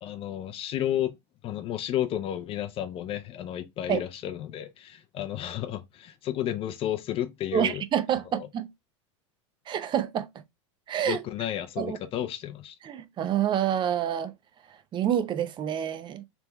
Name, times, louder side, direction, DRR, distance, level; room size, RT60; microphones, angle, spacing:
voice 1, 0.0-1.2 1.4-7.8 8.4-8.5 11.0-12.8, left 11 dB, 35° left, 0.5 m, -32 dB
voice 2, 7.5-8.7 9.7-10.3 10.9-11.2 11.8-12.0 12.9-14.3 14.9-16.2, right 10 dB, 30° right, 0.6 m, -27 dB
3.4 x 3.3 x 3.0 m
hypercardioid pair, 110°, 16 cm